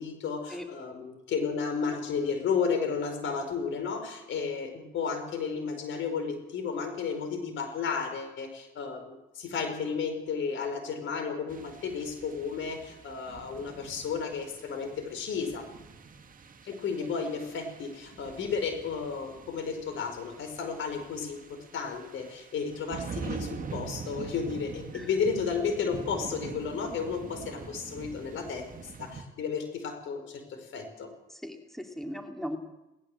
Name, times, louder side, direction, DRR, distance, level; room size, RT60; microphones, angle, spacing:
voice 1, 0.0-15.7 16.7-31.1, left 5 dB, 75° left, 7 dB, 4.8 m, -33 dB
sound 1, 11.5-29.2, right 5 dB, 45° right, 1.8 m, -44 dB
voice 2, 31.4-32.6, equal, ahead, 4 dB, 2.8 m, -38 dB
19.0 x 18.5 x 7.8 m, 0.96 s
cardioid pair, 90°, 20 cm